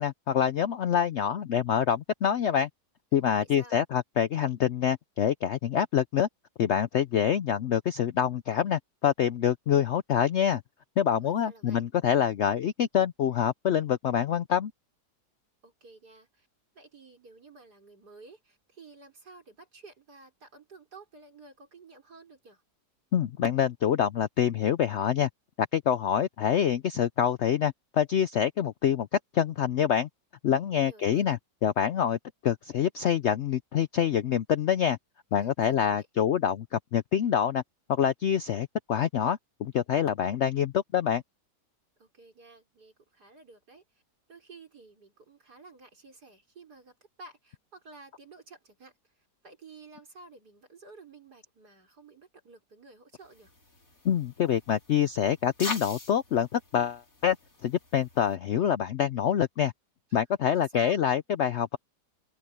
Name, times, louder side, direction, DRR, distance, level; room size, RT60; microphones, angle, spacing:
voice 1, 0.0-2.7 3.1-6.3 6.6-10.6 11.0-14.7 23.1-25.3 25.6-29.1 29.3-30.1 30.4-35.0 35.3-37.6 37.9-41.2 54.0-57.4 57.6-59.7 60.1-61.8, left 9 dB, 80° left, 0.6 m, -26 dB
voice 2, 3.4-3.8 11.2-11.8 15.6-16.5 16.7-22.6 30.7-31.3 35.3-36.1 42.0-44.0 44.3-53.5 60.1-60.2 60.5-61.0, right 3 dB, 65° right, 5.3 m, -52 dB
sound 1, 53.2-58.4, left 3 dB, 50° left, 4.8 m, -43 dB
open air
omnidirectional pair, 1.9 m